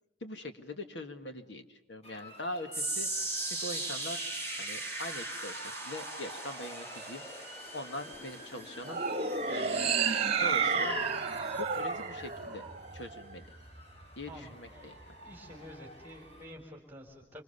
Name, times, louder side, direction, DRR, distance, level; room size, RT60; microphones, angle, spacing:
voice 1, 0.2-3.1 3.5-4.2 4.6-7.2 7.7-9.0 9.5-10.0 10.4-11.0 11.5-12.7 12.9-13.5 14.2-14.9, left 1 dB, 65° left, 7 dB, 2.0 m, -42 dB
Motor vehicle (road) / Siren, 2.0-16.5, equal, 30° left, 4.7 m, -52 dB
sound 1, 2.7-15.0 15.3-15.7 16.3-16.4, right 2 dB, 10° left, 4.0 m, -40 dB
sound 2, 8.9-13.2, right 5 dB, 30° right, 1.7 m, -31 dB
voice 2, 14.3-15.0 15.2-17.4, equal, 10° right, 2 dB, 4.1 m, -49 dB
27.5 x 26.5 x 6.9 m, 0.91 s
head